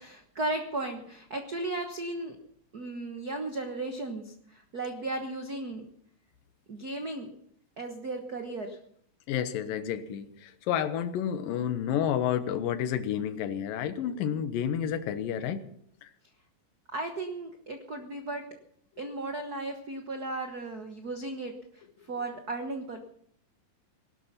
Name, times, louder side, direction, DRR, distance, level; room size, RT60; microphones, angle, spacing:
voice 1, 0.0-2.3 2.7-5.9 6.7-7.3 7.8-8.8 16.9-18.4 19.0-23.1, right 2 dB, 85° right, 4 dB, 0.8 m, -35 dB
voice 2, 9.3-15.7 16.0-16.1, left 9 dB, 90° left, 11 dB, 2.8 m, -30 dB
18.0 x 12.0 x 5.7 m, 0.66 s
omnidirectional pair, 3.9 m